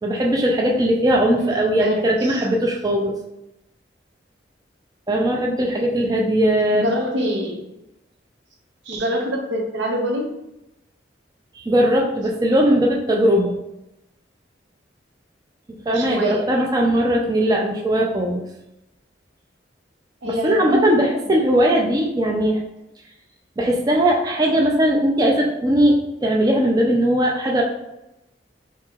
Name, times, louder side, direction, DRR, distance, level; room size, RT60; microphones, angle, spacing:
voice 1, 0.0-3.2 5.1-6.9 11.6-13.5 15.9-18.4 20.2-22.6 23.6-27.6, right 1 dB, 20° right, 0 dB, 0.4 m, -19 dB
voice 2, 1.8-2.4 6.7-7.6 8.9-10.3 15.9-16.5 20.2-21.1, equal, 85° right, 1 dB, 0.8 m, -25 dB
4.2 x 2.8 x 2.4 m, 0.90 s
head